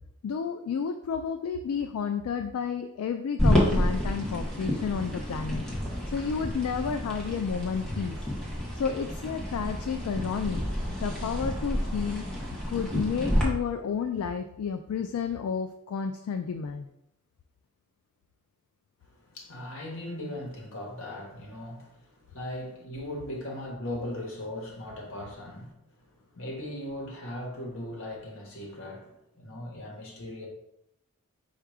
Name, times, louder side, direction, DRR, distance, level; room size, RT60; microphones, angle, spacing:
voice 1, 0.2-5.6 6.1-8.2 8.7-10.6 11.0-12.2 12.7-16.9, left 6 dB, 75° left, 0.3 m, -31 dB
sound 1, 3.4-13.4, equal, 5° left, 0.9 m, -29 dB
voice 2, 19.2-30.5, left 1 dB, 60° left, 1.1 m, -39 dB
4.4 x 2.4 x 4.7 m
head